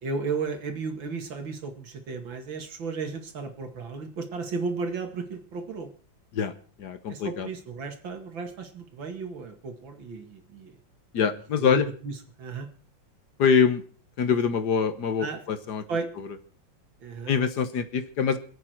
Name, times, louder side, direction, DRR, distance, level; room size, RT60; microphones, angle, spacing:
voice 1, 0.0-5.9 7.1-10.8 11.6-12.7 15.2-15.4 15.9-16.1 17.0-17.3, right 4 dB, 80° right, 5 dB, 2.9 m, -34 dB
voice 2, 6.8-7.5 11.1-11.8 13.4-13.8 14.2-15.8 17.3-18.4, left 6 dB, 60° left, 10 dB, 1.6 m, -24 dB
26.0 x 8.8 x 4.6 m, 0.42 s
omnidirectional pair, 2.1 m